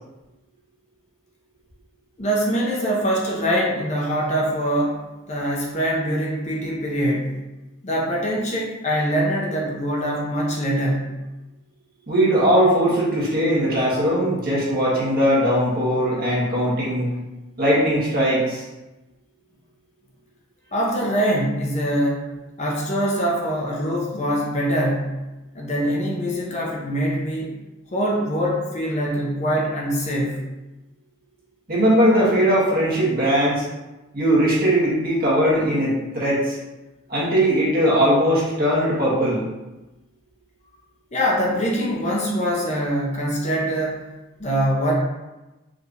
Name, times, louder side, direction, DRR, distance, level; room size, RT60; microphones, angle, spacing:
voice 1, 2.2-5.0 5.3-7.4 7.8-11.1 20.7-25.2 25.5-27.5 27.9-30.4 41.1-44.0 44.4-44.9, equal, 35° left, -3 dB, 0.7 m, -23 dB
voice 2, 12.1-17.1 17.6-18.6 31.7-33.6 34.1-36.6 37.1-39.4, equal, 45° right, -7 dB, 1.4 m, -19 dB
5.0 x 3.2 x 2.6 m, 1.1 s
head